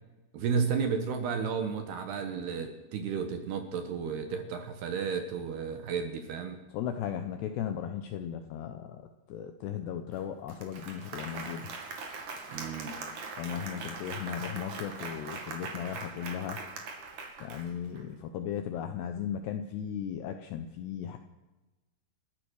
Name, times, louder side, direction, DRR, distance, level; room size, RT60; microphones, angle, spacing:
voice 1, 0.3-6.6 12.5-12.9, right 6 dB, 65° right, 7 dB, 2.9 m, -32 dB
voice 2, 6.7-9.0 9.3-11.7 13.4-16.6 17.4-21.2, left 9 dB, 75° left, 7 dB, 2.5 m, -36 dB
Applause, 10.1-10.2 10.5-18.0, right 4 dB, 45° right, 3.0 m, -41 dB
29.5 x 13.5 x 6.4 m, 1.1 s
omnidirectional pair, 6.0 m